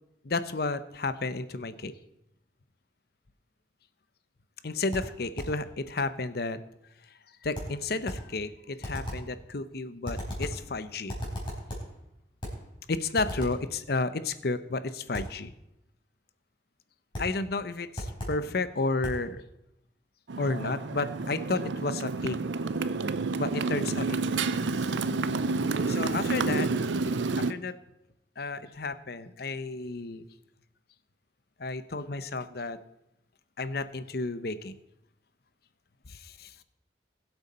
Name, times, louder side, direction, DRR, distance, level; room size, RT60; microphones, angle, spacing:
voice 1, 0.2-1.9 4.6-6.6 7.4-11.1 12.9-15.5 17.2-19.4 20.4-22.4 23.4-24.7 25.9-26.7 27.4-27.8 28.4-30.2 31.6-32.8 33.6-34.7 36.1-36.5, left 3 dB, 60° left, 13 dB, 0.8 m, -32 dB
sound 1, 4.9-5.6 7.5-8.3 8.8-9.3 10.0-10.7 11.1-12.0 12.4-12.7 13.2-13.7 15.1-15.4 17.1-17.4 18.0-18.5 19.0-19.3, equal, 30° left, 4.2 m, -36 dB
Motorcycle, 20.3-27.5, right 3 dB, 85° right, 0.6 m, -29 dB
21.5 x 8.0 x 4.3 m, 0.83 s
head